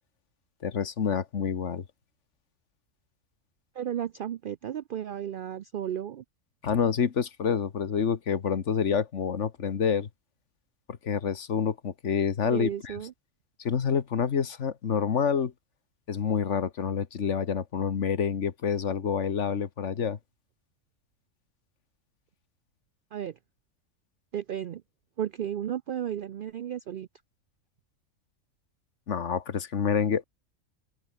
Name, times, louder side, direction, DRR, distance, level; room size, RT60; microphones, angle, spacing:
voice 1, 0.6-1.8 6.6-10.1 10.9-13.0 13.6-15.5 16.1-20.2 29.1-30.2, left 7 dB, 55° left, 1.5 m, -28 dB
voice 2, 3.7-6.2 12.4-13.1 23.1-23.4 24.3-24.8 25.2-27.1, right 10 dB, 80° right, 0.4 m, -34 dB
omnidirectional pair, 1.5 m